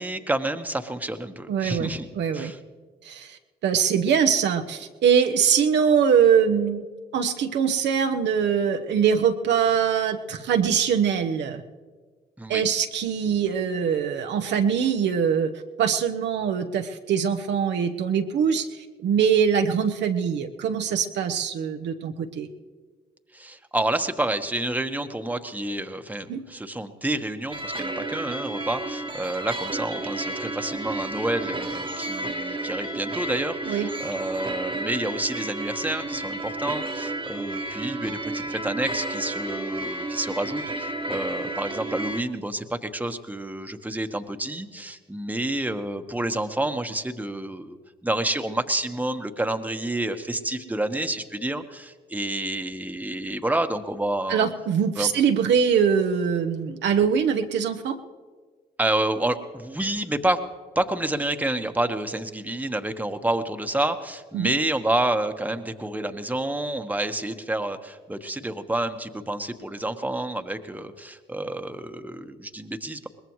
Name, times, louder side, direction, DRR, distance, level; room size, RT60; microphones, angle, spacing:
voice 1, 0.0-2.1 2.3-2.6 12.4-12.6 23.3-47.8 48.0-54.5 54.9-55.1 58.8-60.4 60.7-73.1, right 1 dB, 10° right, 7 dB, 1.3 m, -29 dB
voice 2, 1.5-1.9 2.2-2.5 3.0-6.8 7.1-11.6 12.5-15.5 15.8-18.7 19.0-22.5 26.3-26.4 33.7-33.9 54.3-58.0 64.3-64.5, right 7 dB, 65° right, 5 dB, 1.0 m, -23 dB
sound 1, 27.5-42.2, right 2 dB, 25° right, 1.4 m, -32 dB
22.0 x 20.0 x 3.2 m, 1.5 s
hypercardioid pair, 50°, 20 cm